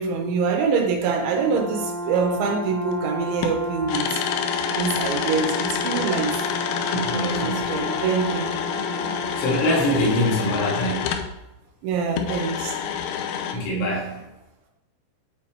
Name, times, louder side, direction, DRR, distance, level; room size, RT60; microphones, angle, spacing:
voice 1, 0.0-4.2 4.7-6.4 7.1-8.5 11.8-12.7, right 5 dB, 80° right, 2 dB, 3.2 m, -25 dB
Brass instrument, 1.1-9.9, equal, 40° right, 0.7 m, -32 dB
sound 1, 2.9-3.0 3.4-11.3 12.1-13.5, left 8 dB, 85° left, 2.6 m, -28 dB
voice 2, 6.8-7.6 9.4-11.3 13.5-14.2, equal, 65° left, -5 dB, 1.5 m, -24 dB
8.1 x 2.9 x 4.3 m, 0.92 s
omnidirectional pair, 5.2 m